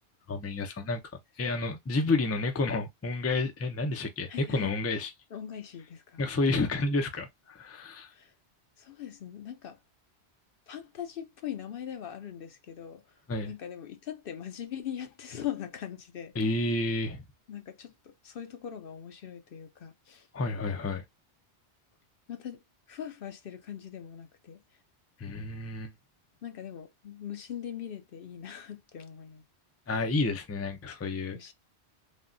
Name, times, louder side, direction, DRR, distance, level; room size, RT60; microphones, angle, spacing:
voice 1, 0.3-1.0 1.4-5.1 6.2-8.1 13.3-13.5 16.4-17.2 20.3-21.0 25.2-25.9 29.9-31.4, left 2 dB, 25° left, 0.3 m, -30 dB
voice 2, 4.3-4.7 5.3-6.2 8.1-8.3 8.8-9.8 10.7-13.0 13.4-16.3 17.5-20.3 22.3-22.6 22.9-24.6 26.4-29.4 31.3-31.5, left 9 dB, 60° left, 0.8 m, -41 dB
3.5 x 2.2 x 2.5 m
omnidirectional pair, 1.2 m